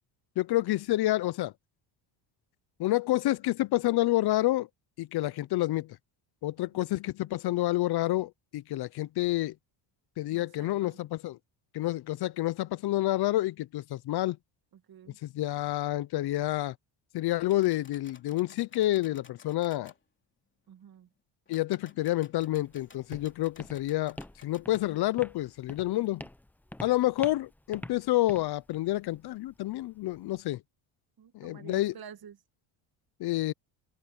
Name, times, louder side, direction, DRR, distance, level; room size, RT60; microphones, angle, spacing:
voice 1, 0.4-1.5 2.8-4.7 5.0-5.9 6.4-9.5 10.2-11.4 11.7-14.4 15.2-16.7 17.1-19.9 21.5-24.2 24.4-26.2 26.8-30.6 31.3-31.9 33.2-33.5, left 16 dB, 50° left, 0.6 m, -28 dB
voice 2, 10.3-11.0 14.7-15.2 20.7-21.1 31.2-32.4, right 8 dB, 45° right, 1.9 m, -50 dB
sound 1, 17.5-20.0 21.5-24.9, left 4 dB, 25° left, 3.2 m, -57 dB
Walk footsteps, 22.4-30.4, left 1 dB, 5° left, 0.7 m, -47 dB
open air
cardioid pair, 125°, 49 cm